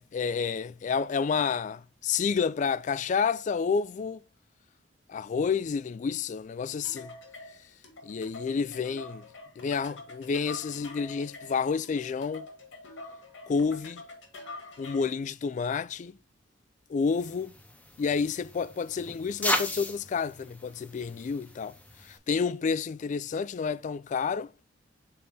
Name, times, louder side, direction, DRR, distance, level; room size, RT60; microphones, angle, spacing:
voice 1, 0.0-4.2 5.1-7.1 8.0-9.2 9.6-12.5 13.5-14.0 14.8-16.2 16.9-17.5 18.0-24.5, left 5 dB, 40° left, 0.3 m, -30 dB
sound 1, 6.8-15.2, left 2 dB, 80° left, 2.0 m, -45 dB
sound 2, 17.1-22.2, left 1 dB, 10° left, 0.8 m, -36 dB
6.8 x 4.0 x 3.5 m
head